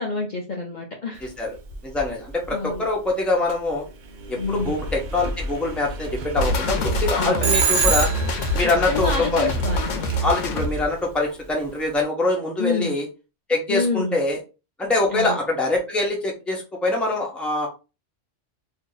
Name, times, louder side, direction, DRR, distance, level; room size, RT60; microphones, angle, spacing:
voice 1, 0.0-1.3 2.5-2.8 4.4-4.9 7.2-7.5 8.6-10.0 12.6-13.0 13.7-14.2 15.1-15.4, left 4 dB, 45° left, -1 dB, 0.7 m, -28 dB
Engine, 1.1-12.0, equal, 55° right, 0.6 m, -34 dB
voice 2, 1.8-3.8 4.3-8.1 8.5-9.5 10.2-13.1 13.5-14.4 14.8-17.7, left 2 dB, ahead, -1 dB, 0.9 m, -24 dB
sound 1, 6.4-10.7, left 1 dB, 85° left, 1.0 m, -25 dB
Telephone, 7.4-8.5, right 7 dB, 70° right, 1.1 m, -22 dB
2.8 x 2.7 x 3.9 m, 0.30 s
omnidirectional pair, 1.3 m